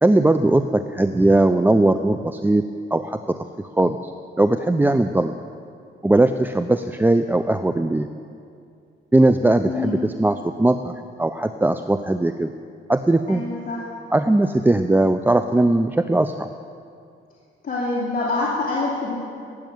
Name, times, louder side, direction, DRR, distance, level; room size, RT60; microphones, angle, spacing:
voice 1, 0.0-2.6 2.9-3.4 3.8-4.1 4.4-5.3 6.0-8.1 9.1-10.9 11.2-12.5 12.9-13.4 14.1-16.5, right 2 dB, 10° right, 8 dB, 0.5 m, -19 dB
voice 2, 13.3-13.8 17.6-19.2, left 3 dB, 45° left, -6 dB, 2.8 m, -25 dB
14.5 x 8.4 x 9.1 m, 2.3 s
cardioid pair, 90°, 20 cm